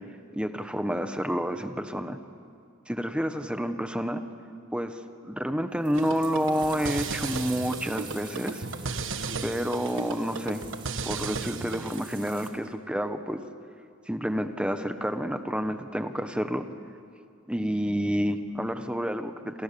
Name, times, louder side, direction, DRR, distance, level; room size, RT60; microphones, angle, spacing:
voice 1, 0.3-2.2 2.9-4.2 4.7-4.9 5.2-8.7 9.4-10.6 11.0-13.4 14.1-16.7 17.5-19.6, equal, 5° right, 8 dB, 1.3 m, -29 dB
sound 1, 5.8-12.5, right 5 dB, 25° right, 2.8 m, -46 dB
sound 2, 5.9-12.0, right 4 dB, 65° right, 1.3 m, -35 dB
29.0 x 28.0 x 7.1 m, 2.3 s
head